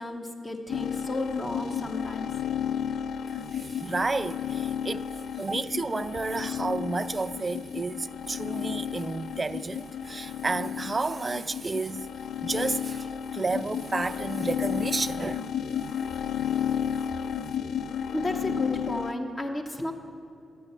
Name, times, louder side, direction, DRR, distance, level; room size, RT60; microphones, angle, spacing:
voice 1, 0.0-2.3 18.1-19.9, left 1 dB, 30° left, 1.0 m, -33 dB
sound 1, 0.7-19.1, left 8 dB, 70° left, 0.3 m, -32 dB
voice 2, 3.5-5.1 5.4-12.1 12.4-15.5, right 3 dB, 35° right, 0.3 m, -31 dB
11.0 x 8.9 x 4.3 m
supercardioid pair, 45°, 0 cm